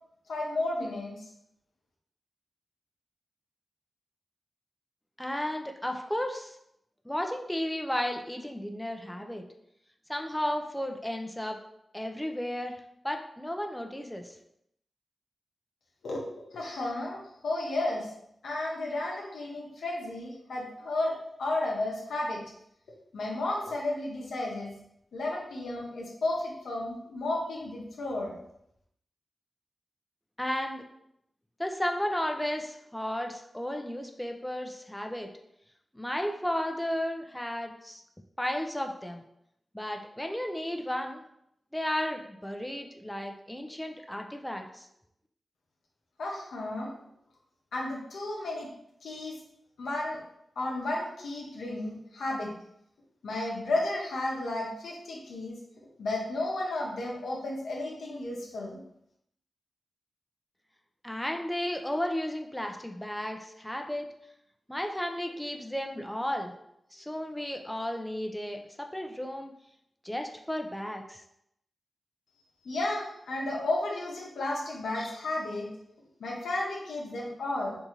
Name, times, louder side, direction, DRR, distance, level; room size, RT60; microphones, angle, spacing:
voice 1, 0.3-1.3 16.0-16.2 16.5-18.1 18.4-22.4 23.1-24.7 25.1-28.4 46.2-46.9 47.7-48.7 49.0-49.4 49.8-50.2 50.6-52.5 53.2-55.6 56.0-58.8 72.6-75.7 76.2-77.8, left 2 dB, 90° left, -2 dB, 0.7 m, -33 dB
voice 2, 5.2-6.6 7.1-9.4 10.1-11.6 11.9-12.8 13.0-14.4 30.4-30.8 31.6-35.3 35.9-38.0 38.4-39.2 39.7-41.2 41.7-44.9 61.0-64.1 64.7-66.5 66.9-69.5 70.0-71.2, left 1 dB, 10° left, 3 dB, 0.4 m, -33 dB
3.6 x 2.6 x 2.9 m, 0.76 s
cardioid pair, 45°, 0 cm